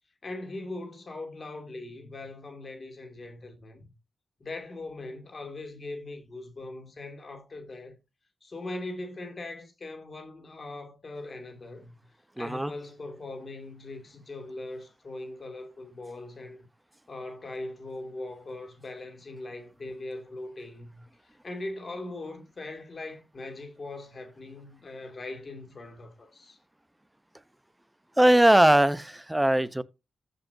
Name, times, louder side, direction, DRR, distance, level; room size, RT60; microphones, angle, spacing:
voice 1, 0.2-3.9 4.4-8.0 8.4-12.1 12.4-16.7 17.1-26.6, left 2 dB, 45° left, 2.5 m, -40 dB
voice 2, 12.4-12.7 28.2-29.8, right 1 dB, 10° right, 0.8 m, -20 dB
14.5 x 5.3 x 2.7 m
supercardioid pair, 45°, 0 cm